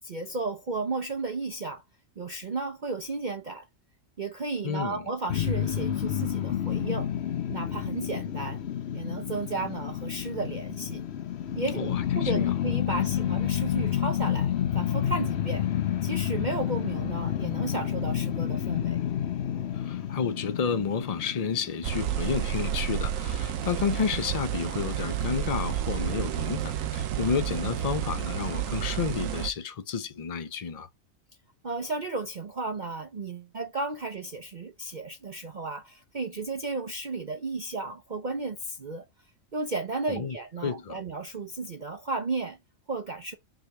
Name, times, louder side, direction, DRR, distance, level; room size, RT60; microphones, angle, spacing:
voice 1, 0.0-1.8 2.2-3.7 4.2-7.1 7.5-8.6 8.9-11.0 11.5-15.7 16.0-19.0 31.6-39.0 39.5-42.6 42.9-43.4, right 3 dB, 40° right, 0.8 m, -34 dB
voice 2, 4.6-5.0 11.7-12.5 19.7-30.9 40.1-40.4 40.6-41.0, left 6 dB, 40° left, 0.6 m, -31 dB
sound 1, 5.3-22.5, left 10 dB, 60° left, 0.9 m, -29 dB
sound 2, 21.8-29.5, right 10 dB, 75° right, 1.1 m, -30 dB
5.9 x 3.4 x 5.8 m
omnidirectional pair, 1.4 m